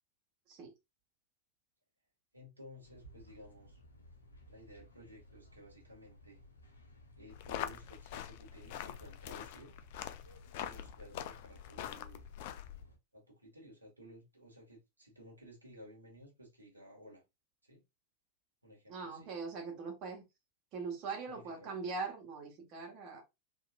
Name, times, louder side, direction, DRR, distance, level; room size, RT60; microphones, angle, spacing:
voice 1, 2.3-3.8 4.5-6.4 7.2-9.8 10.6-12.2 13.1-17.2 17.6-17.8 18.6-19.3 21.3-21.7, equal, 85° right, 1.4 m, -55 dB
sound 1, 2.8-13.0, equal, 80° left, 1.0 m, -59 dB
sound 2, 7.3-12.9, left 11 dB, 50° left, 0.4 m, -44 dB
voice 2, 18.9-20.2 20.7-23.2, right 4 dB, 40° right, 1.2 m, -41 dB
3.8 x 2.8 x 2.3 m
figure-of-eight pair, 90°, 0 cm